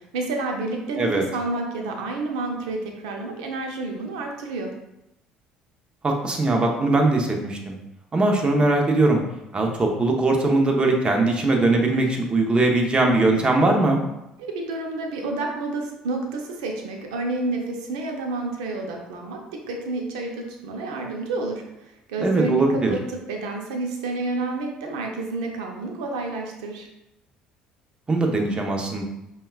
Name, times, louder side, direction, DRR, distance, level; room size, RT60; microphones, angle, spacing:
voice 1, 0.1-4.7 14.4-19.4 19.7-21.6 22.1-26.9, right 3 dB, 85° right, 2 dB, 0.6 m, -29 dB
voice 2, 6.0-7.8 8.1-9.2 9.5-14.0 22.2-22.9 28.1-29.0, right 2 dB, 30° right, 2 dB, 0.8 m, -20 dB
5.3 x 2.3 x 2.4 m, 0.88 s
hypercardioid pair, 65°, 3 cm